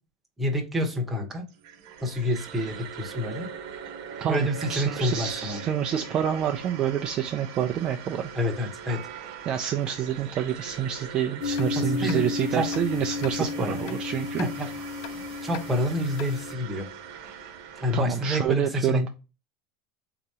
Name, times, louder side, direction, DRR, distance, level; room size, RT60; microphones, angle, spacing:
voice 1, 0.4-1.4 2.0-3.5 4.3-5.6 8.3-9.1 11.7-12.2 12.5-12.7 13.3-13.8 14.4-14.7 15.1-16.9 17.8-19.1, left 1 dB, 5° right, 0 dB, 0.9 m, -28 dB
sound 1, 1.5-18.5, right 7 dB, 50° right, 0.9 m, -42 dB
sound 2, 3.1-11.3, right 6 dB, 80° right, 0.6 m, -44 dB
voice 2, 4.2-8.3 9.5-14.4 17.9-19.1, right 9 dB, 25° right, 4 dB, 0.3 m, -28 dB
sound 3, 11.4-16.5, left 5 dB, 50° left, 0.4 m, -32 dB
3.8 x 2.8 x 4.6 m, 0.31 s
supercardioid pair, 165°, 3 cm